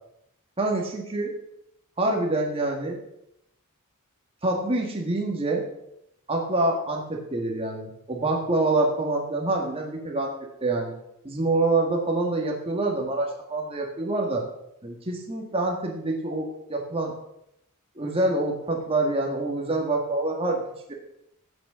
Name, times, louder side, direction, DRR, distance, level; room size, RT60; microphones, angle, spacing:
voice 1, 0.6-1.3 2.0-3.0 4.4-5.6 6.3-10.3 10.6-10.9 11.2-14.5 14.8-17.1 18.0-20.9, right 2 dB, 25° right, 0 dB, 1.8 m, -26 dB
16.5 x 6.3 x 6.3 m, 0.79 s
head